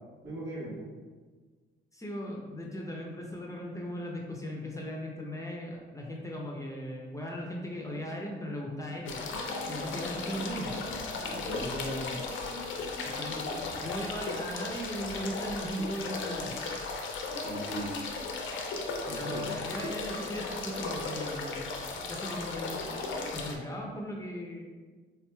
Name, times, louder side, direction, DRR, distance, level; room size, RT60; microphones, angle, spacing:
voice 1, 0.2-0.9 11.3-12.1 17.4-17.9 19.1-19.5, right 1 dB, 75° right, -7 dB, 1.3 m, -38 dB
voice 2, 1.9-9.2 9.7-10.8 13.0-13.4 13.8-16.5 19.1-21.7 22.1-22.8 23.3-24.6, equal, 15° left, -2 dB, 0.5 m, -38 dB
sound 1, 9.1-23.6, left 3 dB, 75° left, 0.5 m, -36 dB
3.5 x 2.9 x 2.2 m, 1.4 s
cardioid pair, 90°, 20 cm